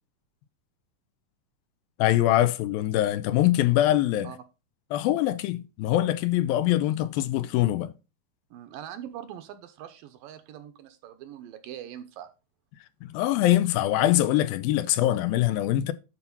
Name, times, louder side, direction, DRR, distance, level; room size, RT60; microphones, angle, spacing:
voice 1, 2.0-4.3 4.9-7.9 13.0-15.9, left 14 dB, 80° left, 2.4 m, -23 dB
voice 2, 8.5-12.3, right 10 dB, 75° right, 2.4 m, -42 dB
11.0 x 4.2 x 5.4 m
omnidirectional pair, 4.3 m